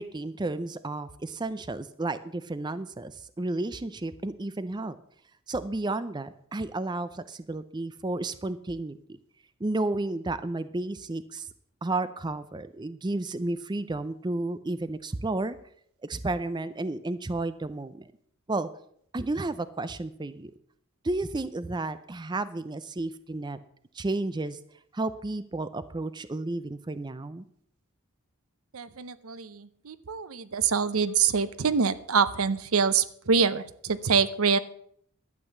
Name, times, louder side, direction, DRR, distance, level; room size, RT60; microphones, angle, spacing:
voice 1, 0.0-5.0 5.5-9.0 9.6-11.5 11.8-15.6 16.0-18.1 18.5-18.7 19.1-20.5 21.0-23.6 23.9-24.6 24.9-27.4, right 2 dB, 20° right, 13 dB, 0.5 m, -32 dB
voice 2, 28.7-34.6, right 5 dB, 70° right, 15 dB, 0.7 m, -25 dB
12.0 x 8.4 x 7.0 m, 0.66 s
head